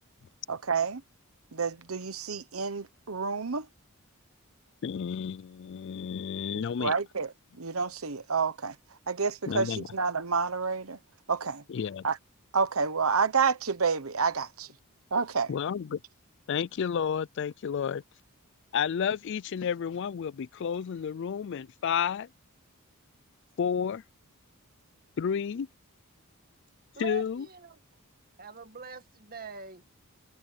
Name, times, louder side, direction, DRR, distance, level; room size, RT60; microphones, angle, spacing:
voice 1, 0.5-1.0 1.5-3.7 6.8-8.7 9.1-11.0 11.3-11.6 12.0-12.2 12.5-14.7 15.1-15.5, right 5 dB, 75° right, 1.1 m, -29 dB
voice 2, 4.8-6.9 9.5-9.8 11.7-12.0 15.5-16.0 16.5-18.0 18.7-22.3 23.6-24.0 25.2-25.7 27.0-27.5, left 7 dB, 55° left, 0.4 m, -31 dB
voice 3, 27.0-27.8 28.4-29.8, right 4 dB, 45° right, 1.9 m, -43 dB
head